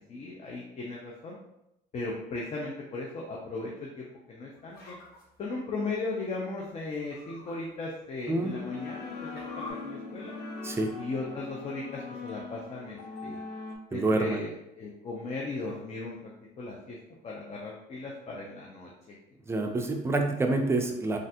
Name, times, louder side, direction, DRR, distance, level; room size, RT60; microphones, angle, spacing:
voice 1, 0.0-1.4 1.9-5.0 5.4-10.3 11.0-13.4 13.9-14.5 14.8-16.3 16.6-17.0 17.2-18.9, left 3 dB, 40° left, -3 dB, 0.6 m, -37 dB
sound 1, 4.6-5.9 6.8-7.5 8.0-8.1 8.7-9.7, left 2 dB, 70° left, 0.9 m, -47 dB
voice 2, 8.3-8.6 10.6-10.9 13.9-14.5 19.5-21.2, right 2 dB, 15° right, 3 dB, 0.4 m, -27 dB
sound 2, 8.5-13.8, left 4 dB, 90° left, 0.6 m, -40 dB
3.2 x 2.5 x 2.8 m, 0.85 s
cardioid pair, 110°, 17 cm